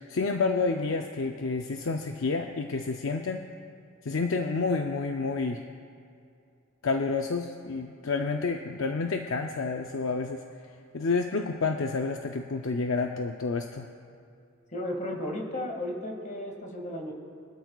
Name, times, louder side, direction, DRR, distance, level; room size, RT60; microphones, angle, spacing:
voice 1, 0.0-3.5 4.0-5.6 6.8-10.4 10.9-13.9, left 4 dB, 60° left, 4 dB, 0.5 m, -29 dB
voice 2, 14.7-17.1, left 1 dB, 35° left, 1 dB, 2.0 m, -34 dB
23.0 x 12.5 x 2.4 m, 2.4 s
head